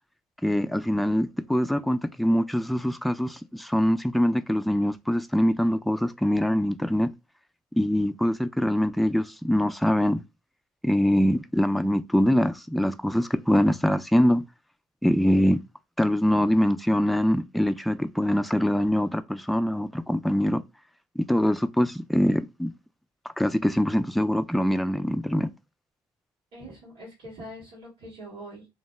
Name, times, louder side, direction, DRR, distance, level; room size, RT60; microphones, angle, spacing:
voice 1, 0.4-7.1 7.7-10.2 10.8-14.4 15.0-15.6 16.0-20.6 21.2-22.7 23.4-25.5, equal, ahead, 0.3 m, -23 dB
voice 2, 26.5-28.7, equal, 90° right, 1.5 m, -43 dB
2.7 x 2.1 x 3.1 m
supercardioid pair, 60°, 10 cm